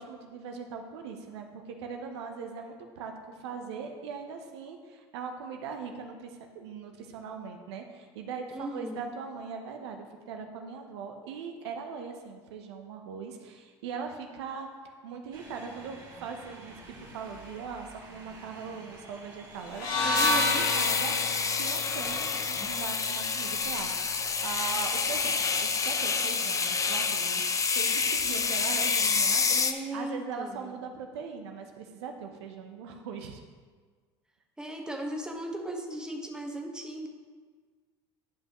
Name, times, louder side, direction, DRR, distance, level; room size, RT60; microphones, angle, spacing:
voice 1, 0.0-27.5 27.7-29.6 29.9-33.4, right 5 dB, 75° right, 4 dB, 0.8 m, -40 dB
voice 2, 8.5-9.0 20.0-20.7 29.5-30.7 34.6-37.1, right 1 dB, 5° right, 1 dB, 1.2 m, -37 dB
sound 1, 15.3-20.9, right 2 dB, 30° right, 2.2 m, -50 dB
sound 2, 19.7-23.9, left 2 dB, 65° left, 1.7 m, -31 dB
sound 3, 20.1-29.7, left 5 dB, 25° left, 0.6 m, -28 dB
11.5 x 5.5 x 3.0 m, 1.5 s
hypercardioid pair, 75°, 14 cm